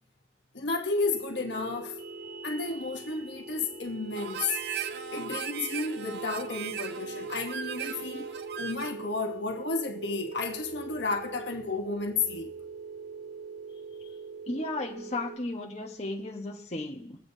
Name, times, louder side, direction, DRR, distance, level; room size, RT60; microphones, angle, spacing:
voice 1, 0.5-2.0 2.4-4.6 5.1-8.3 8.6-12.5, left 4 dB, 85° left, 1.1 m, -32 dB
sound 1, 1.1-15.4, right 4 dB, 50° right, 1.5 m, -42 dB
Harmonica, 4.1-9.1, right 8 dB, 65° right, 0.5 m, -38 dB
voice 2, 14.5-17.2, left 2 dB, 40° left, 1.2 m, -34 dB
21.0 x 8.1 x 2.7 m
head